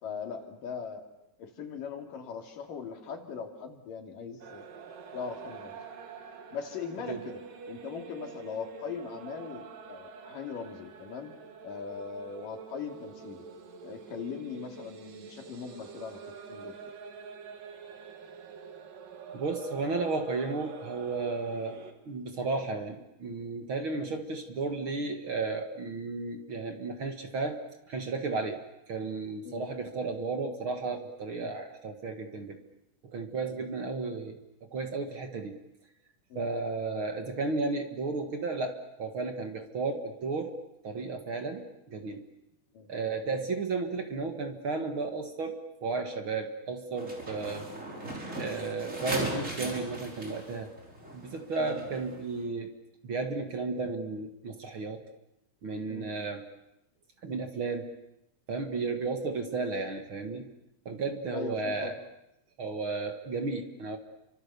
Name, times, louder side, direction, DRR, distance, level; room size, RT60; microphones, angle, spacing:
voice 1, 0.0-1.0 1.4-4.7 5.1-5.8 6.5-11.3 11.6-13.5 13.8-16.2 16.5-16.8 24.0-24.2 29.5-29.7 31.3-31.5 33.4-33.6 36.3-36.5 42.7-42.9 43.3-43.4 47.5-47.6 51.6-51.8 55.9-56.1 58.8-59.0 61.3-62.0, left 6 dB, 90° left, 4 dB, 4.3 m, -40 dB
sound 1, 4.4-21.9, right 5 dB, 90° right, 3.7 m, -46 dB
voice 2, 19.3-21.8 22.1-27.6 27.9-28.6 28.9-32.6 33.0-34.4 34.7-35.6 36.4-40.6 40.8-42.2 42.9-47.7 48.4-50.7 51.1-52.7 53.0-55.0 55.6-56.4 57.2-57.9 58.5-60.5 60.9-61.9 62.6-64.0, right 3 dB, 45° right, 6 dB, 2.3 m, -33 dB
sound 2, 47.0-52.4, right 1 dB, 20° right, 5.3 m, -38 dB
30.0 x 25.5 x 6.9 m, 0.84 s
omnidirectional pair, 3.7 m